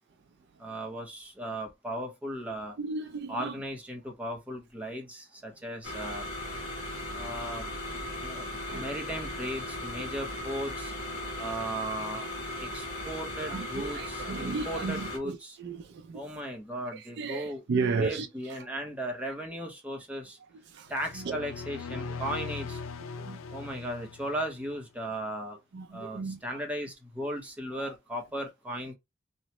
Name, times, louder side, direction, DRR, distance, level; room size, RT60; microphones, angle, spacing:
voice 1, 0.6-2.8 3.3-6.3 7.1-8.4 8.7-10.9 11.4-12.3 12.6-15.6 16.1-17.6 18.0-20.4 20.9-22.8 23.5-25.6 25.9-28.9, right 1 dB, 5° right, 0.8 m, -37 dB
voice 2, 2.8-3.5 8.7-8.9 9.9-10.1 13.4-16.3 16.9-18.3 20.7-21.4 22.1-22.2 23.2-23.4 25.7-26.6 27.7-27.8, right 4 dB, 60° right, 0.4 m, -35 dB
sound 1, 5.8-15.2, left 1 dB, 60° left, 1.4 m, -37 dB
sound 2, 20.9-24.8, left 5 dB, 80° left, 0.4 m, -40 dB
3.0 x 2.1 x 2.8 m
head